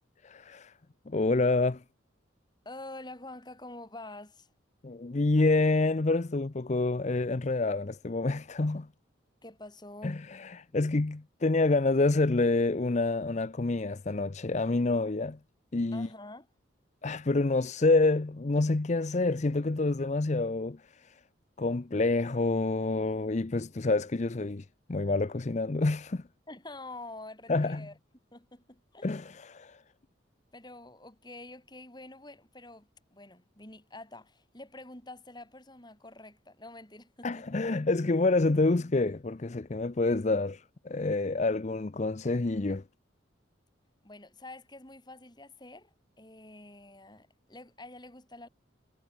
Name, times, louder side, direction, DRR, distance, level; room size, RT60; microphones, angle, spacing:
voice 1, 0.2-0.7 1.1-1.8 4.8-8.9 10.0-15.4 15.7-16.1 17.0-21.1 21.6-26.2 27.5-27.9 29.0-29.8 37.2-42.8, left 3 dB, 35° left, 0.6 m, -27 dB
voice 2, 2.6-4.5 9.4-10.2 15.9-16.5 26.5-28.0 28.3-29.1 30.5-37.7 44.0-48.5, left 2 dB, 20° left, 4.9 m, -47 dB
head